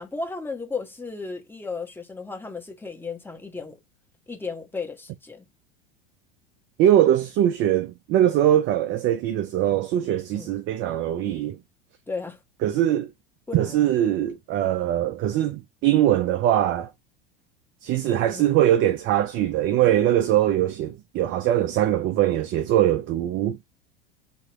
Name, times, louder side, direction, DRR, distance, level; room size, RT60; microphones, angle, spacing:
voice 1, 0.0-3.8 4.3-5.5 10.3-10.5 12.1-12.4 13.5-13.9 18.2-18.6, left 4 dB, 5° left, 1.2 m, -34 dB
voice 2, 6.8-11.6 12.6-13.1 13.5-16.9 17.8-23.6, right 12 dB, 40° right, 0.5 m, -22 dB
3.2 x 2.9 x 2.9 m
hypercardioid pair, 85°, 29 cm